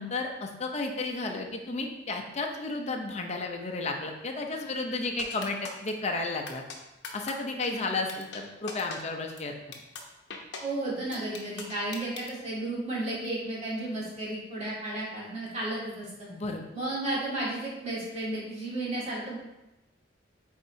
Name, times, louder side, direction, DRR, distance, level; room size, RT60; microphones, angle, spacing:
voice 1, 0.0-6.6 7.1-9.6 16.3-16.6, left 3 dB, 35° left, 2 dB, 0.7 m, -33 dB
sound 1, 5.2-5.9 6.5-6.8 7.0-7.3 7.6-7.7 8.1-8.4 8.7-9.0 9.4-9.5 9.7-10.0 10.3-10.6 11.1-12.3, left 5 dB, 65° left, 0.8 m, -39 dB
voice 2, 10.6-16.3 16.7-19.4, right 2 dB, 35° right, -7 dB, 2.0 m, -33 dB
8.3 x 4.2 x 2.8 m, 0.96 s
head